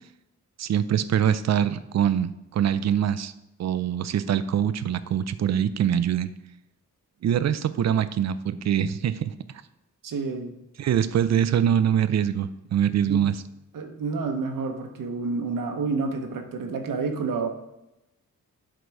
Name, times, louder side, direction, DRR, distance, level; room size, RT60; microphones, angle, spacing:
voice 1, 0.6-3.3 3.6-6.3 7.2-9.3 10.8-13.3, right 9 dB, 55° right, 14 dB, 0.5 m, -24 dB
voice 2, 10.0-10.5 13.1-13.3 13.7-17.5, right 4 dB, 75° right, 5 dB, 1.0 m, -29 dB
8.0 x 4.0 x 4.6 m, 0.90 s
cardioid pair, 100°, 33 cm